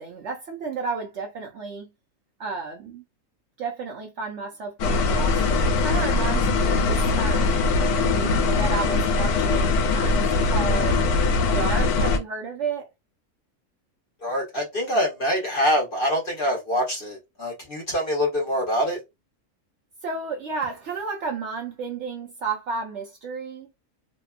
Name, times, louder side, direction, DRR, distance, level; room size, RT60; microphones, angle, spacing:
voice 1, 0.0-1.9 2.4-3.0 3.6-7.6 8.0-11.0 11.5-12.9 20.0-23.7, right 4 dB, 65° right, 0.8 m, -32 dB
sound 1, 4.8-12.2, left 3 dB, 85° left, 1.1 m, -21 dB
voice 2, 14.2-19.0, equal, 45° left, 0.8 m, -25 dB
2.8 x 2.2 x 2.3 m
omnidirectional pair, 1.6 m